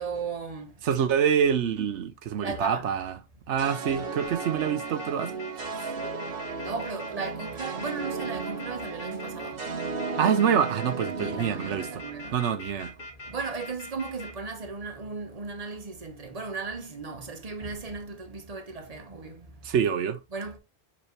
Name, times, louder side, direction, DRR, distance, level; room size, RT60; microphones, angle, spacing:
voice 1, 0.0-0.7 2.4-2.9 6.6-9.6 11.1-12.4 13.3-19.5 20.3-20.6, right 4 dB, 35° right, 1.3 m, -36 dB
voice 2, 0.8-3.1 3.5-5.3 10.2-12.0 12.3-12.9 19.6-20.2, right 8 dB, 90° right, 1.0 m, -26 dB
sound 1, 3.6-12.9, right 4 dB, 55° right, 1.2 m, -35 dB
sound 2, 4.2-14.3, left 2 dB, 50° left, 1.6 m, -42 dB
7.0 x 4.2 x 3.2 m
omnidirectional pair, 1.2 m